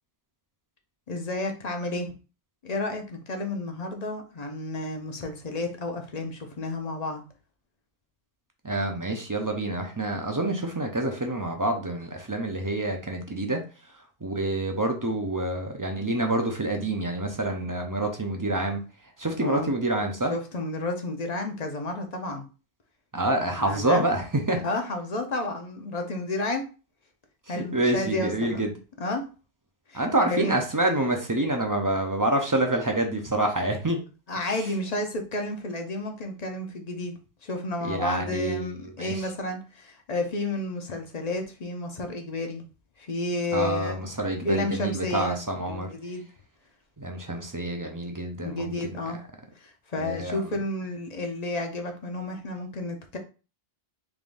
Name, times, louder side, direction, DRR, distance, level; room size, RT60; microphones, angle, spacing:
voice 1, 1.1-2.1 2.6-7.2 19.4-19.7 20.3-22.5 23.6-24.1 24.6-26.6 27.5-28.6 29.0-29.3 29.9-30.5 34.3-42.6 43.0-43.9 44.4-45.4 45.7-46.3 48.4-49.2 49.5-53.2, left 2 dB, 45° left, 0.7 m, -31 dB
voice 2, 8.6-13.6 14.2-18.8 19.2-20.3 23.1-24.6 27.5-28.7 29.9-34.0 37.8-38.7 39.0-39.2 43.5-45.9 47.0-48.7 50.0-50.5, right 1 dB, 25° right, 0.4 m, -27 dB
3.6 x 3.5 x 2.5 m
omnidirectional pair, 1.0 m